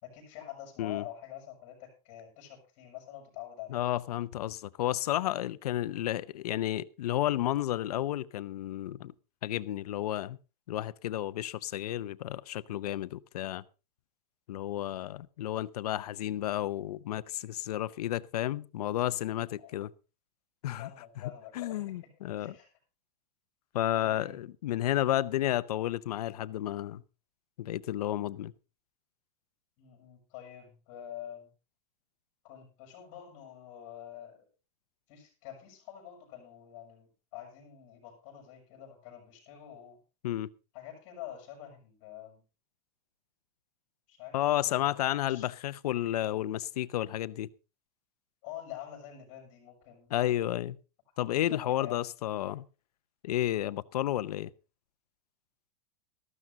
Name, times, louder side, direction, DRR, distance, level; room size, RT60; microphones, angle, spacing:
voice 1, 0.0-3.8 19.6-19.7 20.8-22.1 22.4-22.7 24.0-24.4 29.8-31.5 32.4-34.4 35.1-40.0 40.7-42.4 44.1-45.5 48.4-50.5 51.4-52.0, left 11 dB, 35° left, 6.1 m, -46 dB
voice 2, 3.7-9.1 9.4-10.4 10.7-13.6 14.5-19.9 20.6-20.9 21.5-22.5 23.7-27.0 27.6-28.5 40.2-40.5 44.3-47.5 50.1-50.8 51.2-52.6 53.2-54.5, left 13 dB, 70° left, 0.7 m, -32 dB
13.5 x 12.5 x 3.9 m
supercardioid pair, 175°, 20 cm